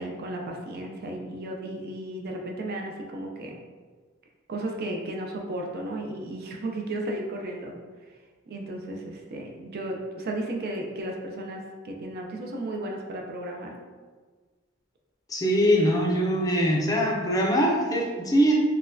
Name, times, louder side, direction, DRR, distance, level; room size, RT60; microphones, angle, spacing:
voice 1, 0.0-3.6 4.5-7.8 8.5-13.8, right 1 dB, 50° right, 1 dB, 0.4 m, -34 dB
voice 2, 15.3-18.5, equal, 20° left, -3 dB, 0.5 m, -22 dB
4.1 x 2.2 x 2.6 m, 1.4 s
head